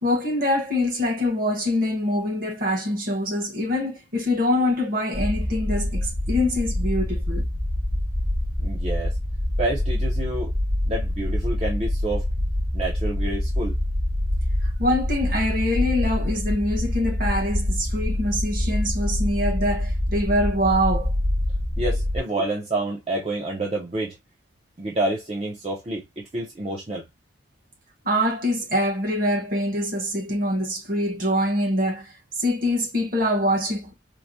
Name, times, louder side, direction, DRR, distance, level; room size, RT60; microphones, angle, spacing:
voice 1, 0.0-7.4 14.8-21.1 28.0-32.1 32.4-33.9, left 1 dB, 45° right, 1.0 m, -24 dB
sound 1, 5.1-22.2, left 1 dB, 80° right, 2.3 m, -25 dB
voice 2, 8.6-9.2 9.6-10.5 10.9-12.3 12.7-13.8 21.8-24.2 24.8-27.1, right 2 dB, 30° right, 0.5 m, -28 dB
4.5 x 2.0 x 2.5 m
head